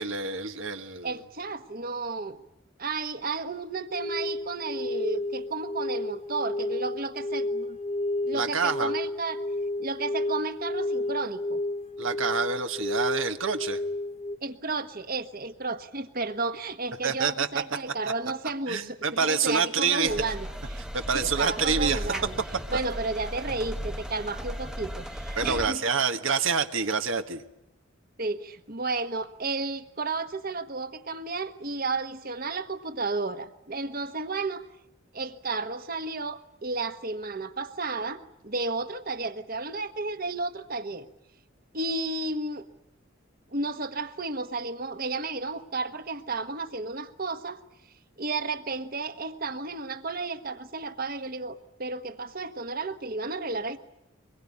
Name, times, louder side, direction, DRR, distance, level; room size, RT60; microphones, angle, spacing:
voice 1, 0.0-1.1 8.3-8.9 12.0-13.8 17.0-17.5 18.7-20.1 20.9-22.0 22.5-22.8 25.4-27.4, right 5 dB, 80° right, 7 dB, 1.5 m, -27 dB
voice 2, 1.0-2.4 2.8-7.8 8.2-9.4 9.8-11.6 14.4-20.8 21.1-22.4 22.7-25.8 28.2-34.7 35.1-41.1 41.7-42.7 43.5-47.6 48.2-53.8, right 3 dB, 45° right, 9 dB, 1.3 m, -32 dB
sound 1, 3.9-14.4, left 2 dB, 35° left, 1.0 m, -31 dB
sound 2, 20.1-25.7, equal, 5° right, 1.0 m, -36 dB
24.0 x 21.5 x 10.0 m, 0.85 s
head